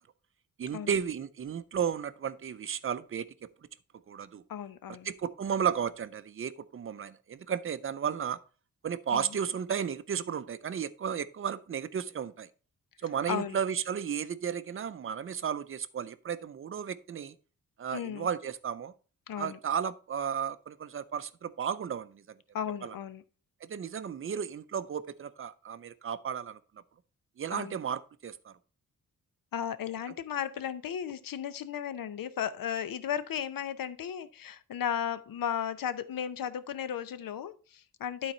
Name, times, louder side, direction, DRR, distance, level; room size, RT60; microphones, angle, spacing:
voice 1, 0.6-3.3 4.1-4.4 5.0-8.4 8.8-12.5 13.0-17.3 17.8-18.9 19.4-22.2 22.8-22.9 23.6-26.6 27.4-28.5, right 7 dB, 40° right, 0.5 m, -33 dB
voice 2, 4.5-5.1 9.1-9.3 13.3-13.6 17.9-18.3 19.3-19.6 22.5-23.2 27.5-27.8 29.5-38.3, left 9 dB, 75° left, 0.7 m, -35 dB
12.0 x 4.1 x 4.3 m
wide cardioid pair, 175°, 34 cm